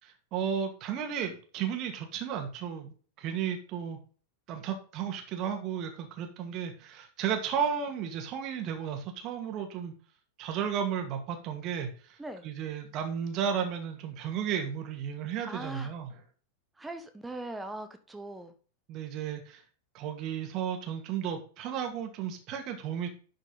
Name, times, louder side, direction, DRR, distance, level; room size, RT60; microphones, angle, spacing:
voice 1, 0.0-4.0 4.5-9.9 10.4-12.2 12.4-16.1 18.9-19.6 19.9-23.1, right 8 dB, 40° right, 4 dB, 2.3 m, -34 dB
voice 2, 15.4-15.9 16.8-18.5, right 1 dB, 10° right, 9 dB, 1.5 m, -40 dB
11.5 x 5.3 x 4.1 m, 0.39 s
figure-of-eight pair, 90°, 0 cm